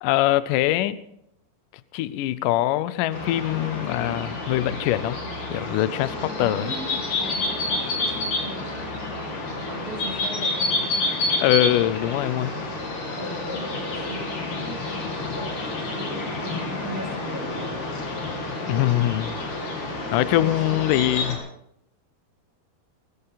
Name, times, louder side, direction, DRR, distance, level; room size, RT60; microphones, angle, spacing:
voice 1, 0.0-1.0 1.9-5.2 5.5-6.7 11.4-12.5 18.7-19.4 20.1-21.4, left 14 dB, 85° left, 15 dB, 1.8 m, -23 dB
sound 1, 3.1-21.4, left 2 dB, 50° left, 4.1 m, -29 dB
voice 2, 6.4-10.9 13.2-17.5 20.4-21.0, right 1 dB, 60° right, -4 dB, 5.1 m, -39 dB
21.5 x 14.5 x 4.0 m, 0.76 s
omnidirectional pair, 4.6 m